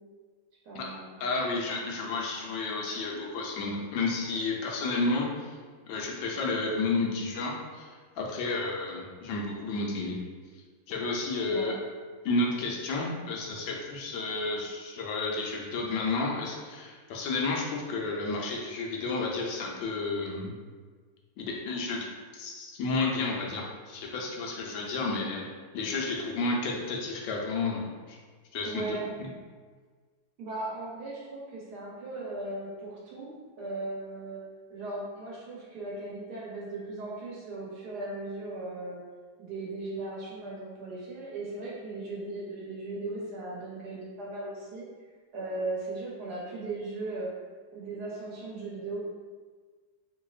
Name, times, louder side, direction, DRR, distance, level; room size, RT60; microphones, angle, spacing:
voice 1, 0.6-1.2 11.5-11.7 28.6-29.1 30.4-33.3 33.6-34.4 34.7-39.0 39.4-44.9 45.3-47.3 47.7-49.0, right 2 dB, 65° right, -5 dB, 1.2 m, -37 dB
voice 2, 1.2-5.6 5.9-10.2 10.9-11.8 12.2-20.5 21.5-25.4 25.7-28.2 28.5-29.3, left 3 dB, 80° left, -1 dB, 1.4 m, -31 dB
4.5 x 2.7 x 2.3 m, 1.5 s
omnidirectional pair, 2.1 m